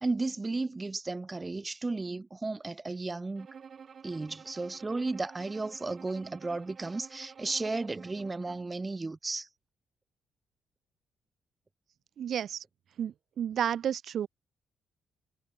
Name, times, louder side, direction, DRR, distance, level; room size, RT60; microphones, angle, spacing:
voice 1, 0.0-3.5 4.0-9.5, right 3 dB, 20° right, 0.6 m, -34 dB
Bowed string instrument, 3.4-8.8, right 6 dB, 50° right, 2.3 m, -51 dB
voice 2, 12.2-12.6 13.0-14.3, right 9 dB, 65° right, 0.3 m, -31 dB
cardioid pair, 90°, 0 cm